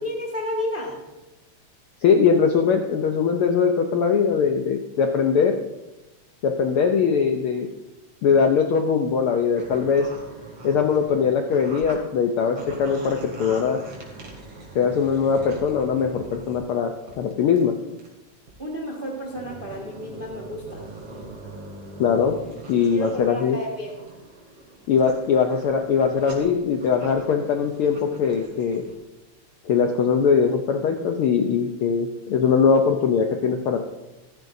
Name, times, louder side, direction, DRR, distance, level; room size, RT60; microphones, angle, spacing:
voice 1, 0.0-1.0 18.6-20.9 22.9-24.0, equal, 25° right, -1 dB, 1.4 m, -31 dB
voice 2, 2.0-5.5 6.4-7.7 8.2-10.1 10.6-13.8 14.7-16.9 17.2-17.7 22.0-22.4 22.7-23.6 24.9-28.8 29.6-33.8, left 6 dB, 85° left, 4 dB, 1.2 m, -21 dB
sound 1, 9.5-12.0 12.3-16.6 17.1-17.3 17.6-17.7 18.0-18.1 18.5-18.6 19.2-23.2 23.6-28.9, right 2 dB, 55° right, 3.5 m, -42 dB
15.0 x 14.0 x 2.7 m, 1.0 s
omnidirectional pair, 3.4 m